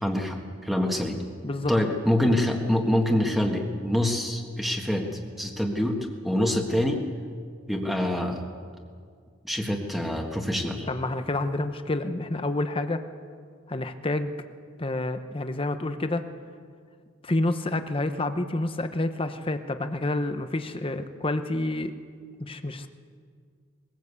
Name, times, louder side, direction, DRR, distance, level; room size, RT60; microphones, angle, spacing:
voice 1, 0.0-1.2 1.7-5.1 5.4-6.0 6.2-7.0 7.7-8.4 9.4-10.9, left 1 dB, ahead, 1 dB, 1.7 m, -25 dB
voice 2, 10.9-13.1 13.7-14.3 14.8-16.3 17.2-21.9 22.4-22.9, left 2 dB, 30° left, 9 dB, 0.8 m, -28 dB
21.0 x 16.0 x 8.3 m, 2.1 s
head